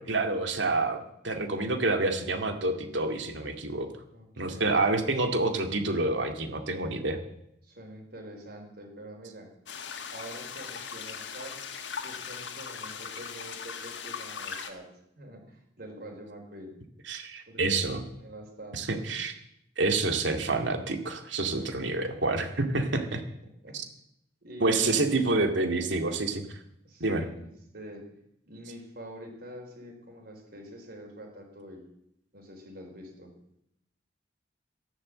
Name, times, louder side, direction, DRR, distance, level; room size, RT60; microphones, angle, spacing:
voice 1, 0.0-3.9 4.4-7.2 17.1-18.0 18.7-19.3 19.8-23.2 24.6-26.6 27.0-27.2, right 2 dB, 80° right, 5 dB, 2.2 m, -28 dB
voice 2, 4.1-5.1 7.6-9.5 10.1-11.6 12.0-14.9 15.2-16.8 17.5-19.1 21.5-22.2 23.4-23.8 24.4-25.0 26.8-28.1 28.4-31.9 32.3-33.3, equal, 55° right, 2 dB, 4.7 m, -46 dB
sound 1, 9.7-14.7, left 6 dB, 70° left, 1.6 m, -39 dB
13.5 x 11.5 x 7.8 m, 0.77 s
head